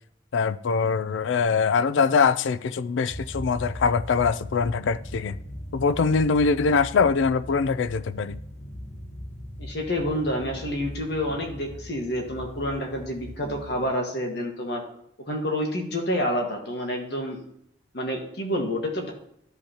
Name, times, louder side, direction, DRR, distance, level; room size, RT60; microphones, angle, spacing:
voice 1, 0.3-5.4 5.7-8.4, left 5 dB, 75° left, 0.4 m, -23 dB
sound 1, 3.1-13.9, equal, 35° left, 1.1 m, -39 dB
voice 2, 9.6-14.8 15.3-17.4 17.9-19.1, equal, 60° left, 1.5 m, -28 dB
13.5 x 5.5 x 2.9 m
head